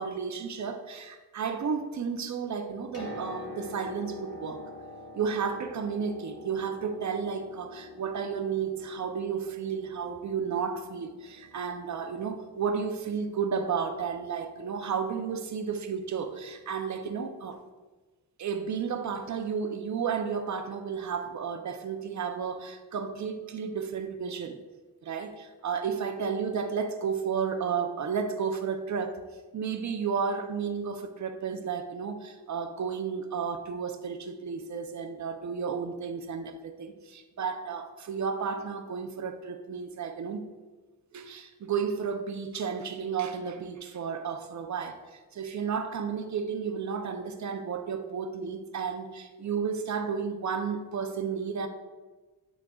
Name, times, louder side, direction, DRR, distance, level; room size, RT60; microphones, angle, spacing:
voice 1, 0.0-4.6 5.1-17.6 18.4-24.6 25.0-29.2 29.5-40.4 41.1-51.7, right 6 dB, 50° right, 8 dB, 0.6 m, -32 dB
Piano, 2.7-16.4 17.5-17.6, left 2 dB, 40° left, 1.7 m, -47 dB
8.8 x 6.2 x 2.3 m, 1.3 s
wide cardioid pair, 150°, 37 cm